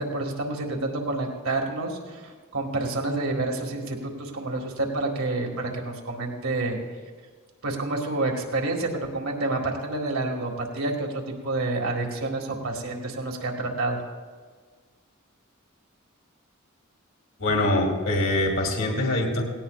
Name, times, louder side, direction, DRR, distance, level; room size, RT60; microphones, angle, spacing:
voice 1, 0.0-6.8 7.6-14.0, right 2 dB, 75° right, 1 dB, 2.1 m, -29 dB
voice 2, 17.4-19.4, left 1 dB, 70° left, 0 dB, 2.4 m, -24 dB
18.0 x 17.0 x 2.5 m, 1.5 s
head